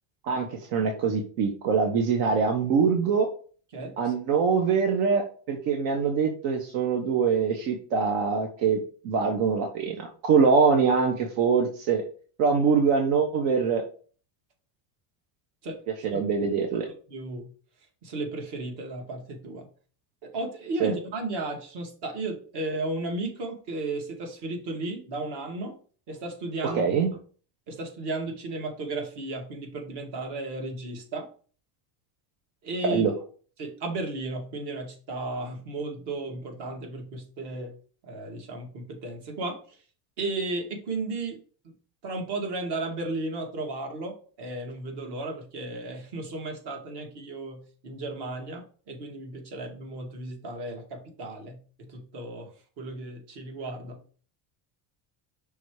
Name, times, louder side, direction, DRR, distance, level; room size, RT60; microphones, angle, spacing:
voice 1, 0.2-3.3 4.0-12.0 12.4-13.8 16.0-16.9 20.8-20.9 26.6-27.1 32.8-33.1, right 5 dB, 85° right, 3 dB, 1.2 m, -24 dB
voice 2, 3.7-4.1 15.6-15.8 16.1-16.3 16.8-17.5 18.0-19.7 20.2-25.7 26.1-26.9 27.7-31.3 32.6-33.0 33.6-37.7 38.0-39.6 40.2-41.4 41.6-41.7 42.0-54.0, right 2 dB, 60° right, 3 dB, 2.1 m, -34 dB
5.9 x 3.6 x 4.8 m, 0.41 s
cardioid pair, 145°, 45 cm